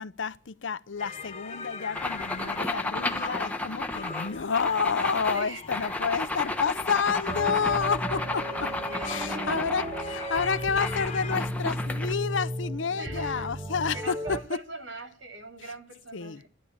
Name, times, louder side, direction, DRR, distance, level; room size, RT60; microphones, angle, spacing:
voice 1, 0.0-8.7 9.0-14.6 15.6-15.8 16.1-16.4, left 5 dB, 75° left, 0.7 m, -30 dB
sound 1, 1.0-11.4, left 4 dB, 35° left, 1.4 m, -41 dB
sound 2, 1.9-12.1, left 2 dB, 10° left, 1.2 m, -33 dB
voice 2, 5.3-5.9 8.4-8.5 8.9-9.7 13.0-13.5 13.9-16.5, right 3 dB, 75° right, 2.9 m, -40 dB
sound 3, 7.3-14.4, equal, 30° right, 1.1 m, -35 dB
12.0 x 11.5 x 8.7 m
head